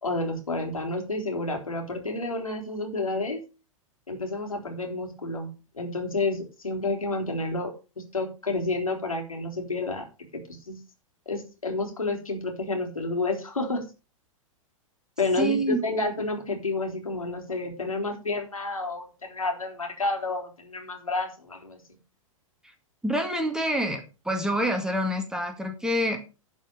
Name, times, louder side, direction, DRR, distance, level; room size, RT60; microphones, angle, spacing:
voice 1, 0.0-3.4 4.1-7.7 8.0-10.1 10.5-10.8 11.3-13.8 15.2-21.8, left 2 dB, 80° left, 2 dB, 3.9 m, -30 dB
voice 2, 15.4-15.8 23.0-24.0 24.3-26.3, right 1 dB, 5° right, 5 dB, 2.0 m, -26 dB
11.0 x 5.7 x 6.7 m, 0.31 s
figure-of-eight pair, 100°, 18 cm